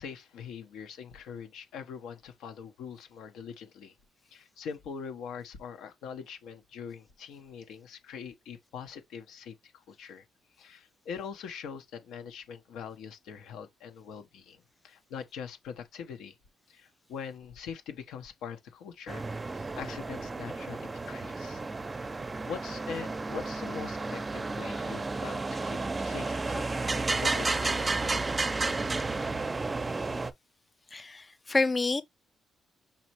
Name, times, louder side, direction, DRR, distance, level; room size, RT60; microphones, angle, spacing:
voice 1, 0.0-4.0 4.3-10.3 10.6-16.4 16.7-21.6 22.0-22.2 22.5-28.2, left 6 dB, 85° left, 0.9 m, -43 dB
sound 1, 19.1-30.3, right 3 dB, 25° right, 0.6 m, -32 dB
voice 2, 30.9-32.0, left 3 dB, 25° left, 0.5 m, -28 dB
5.6 x 3.1 x 2.9 m
cardioid pair, 90°, 0 cm